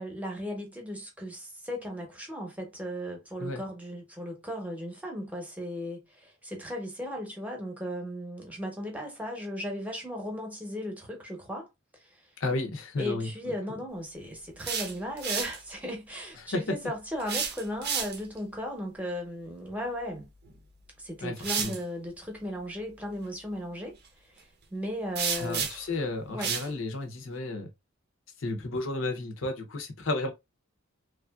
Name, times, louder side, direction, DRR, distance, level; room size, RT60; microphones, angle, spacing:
voice 1, 0.0-11.7 11.9-12.3 13.0-20.3 21.0-25.9 26.3-26.5, equal, 5° right, 0.9 m, -36 dB
voice 2, 12.4-13.3 16.4-16.7 21.2-21.8 25.4-27.7 28.4-30.3, left 2 dB, 70° left, 0.7 m, -32 dB
sound 1, 14.4-15.6 17.2-18.4 20.4-20.6 21.4-21.8 25.2-25.9 26.4-26.7, right 7 dB, 55° right, 0.6 m, -31 dB
3.2 x 2.4 x 2.3 m
head